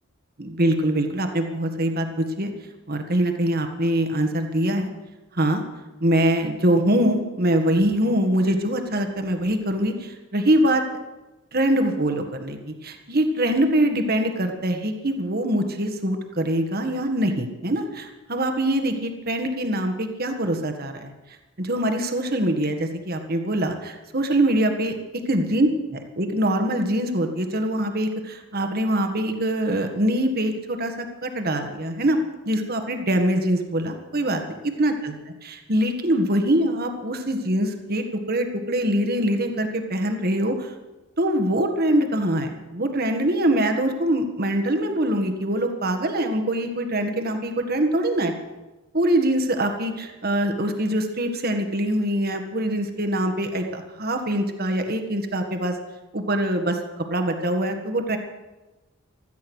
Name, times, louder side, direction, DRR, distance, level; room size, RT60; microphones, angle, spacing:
voice 1, 0.4-2.5 2.9-4.9 5.3-5.6 6.0-10.8 11.5-21.1 21.6-24.9 25.3-30.9 31.2-32.2 32.4-34.4 34.8-35.2 35.4-40.7 41.2-48.3 48.9-55.8 56.1-56.8 57.1-58.2, right 1 dB, 45° right, 5 dB, 1.6 m, -23 dB
16.0 x 13.0 x 6.3 m, 1.1 s
head